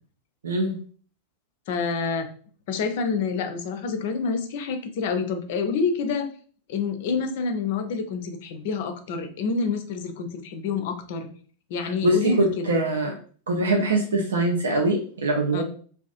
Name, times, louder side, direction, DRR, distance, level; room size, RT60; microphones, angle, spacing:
voice 1, 0.4-0.8 11.8-13.2 13.5-15.6, right 1 dB, 65° right, 1 dB, 0.4 m, -23 dB
voice 2, 1.7-2.3 2.7-6.3 6.7-11.3 11.7-12.7 15.5-15.6, left 5 dB, 50° left, 7 dB, 0.4 m, -27 dB
2.4 x 2.3 x 2.4 m, 0.44 s
figure-of-eight pair, 90°, 0 cm